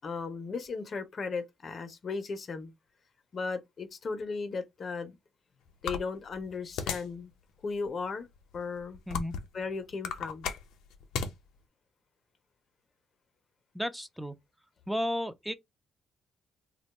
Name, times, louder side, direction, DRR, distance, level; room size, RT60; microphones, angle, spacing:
voice 1, 0.0-2.7 3.3-5.2 5.8-7.3 7.6-8.3 8.5-9.0 9.5-10.5, left 4 dB, 50° left, 0.6 m, -36 dB
sound 1, 5.9-7.2 7.7-7.9 8.5-9.6 9.9-11.3, left 6 dB, 90° left, 0.6 m, -35 dB
voice 2, 13.7-14.3 14.9-15.5, equal, ahead, 0.5 m, -33 dB
2.5 x 2.2 x 4.0 m
cardioid pair, 90°, 0 cm